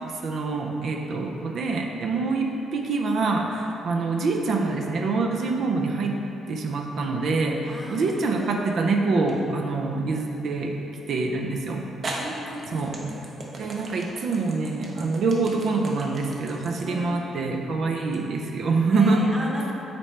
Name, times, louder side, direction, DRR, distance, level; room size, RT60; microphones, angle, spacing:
voice 1, 0.0-6.2 6.5-10.8 11.1-11.9 12.7-12.9 13.6-19.3, right 3 dB, 65° right, 2 dB, 0.5 m, -25 dB
voice 2, 7.7-8.8 12.2-13.2 16.8-17.2 18.9-19.7, equal, 20° right, -3 dB, 1.1 m, -37 dB
sound 1, 7.9-8.5 9.3-9.4 11.3-11.4 12.0-18.2, right 2 dB, 45° right, 0.9 m, -38 dB
6.9 x 4.3 x 3.2 m, 2.8 s
cardioid pair, 90°, 0 cm